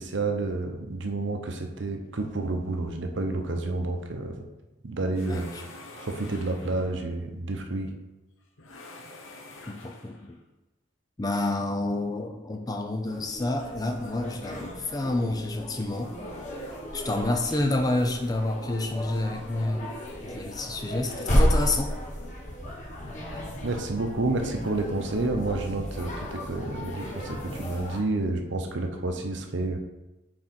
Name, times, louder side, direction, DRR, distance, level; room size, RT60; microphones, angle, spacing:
voice 1, 0.0-4.5 4.8-5.5 6.0-7.9 23.6-29.8, right 2 dB, 70° right, 4 dB, 0.8 m, -30 dB
sound 1, 5.1-7.0 8.6-10.3, left 2 dB, 85° left, 0.9 m, -46 dB
voice 2, 5.3-5.6 9.7-10.3 11.2-16.1 16.9-19.9 20.2-21.9, left 2 dB, 20° left, 4 dB, 0.4 m, -29 dB
sound 2, 13.1-28.0, equal, 35° left, 1.3 m, -32 dB
6.3 x 4.3 x 4.3 m, 1.0 s
head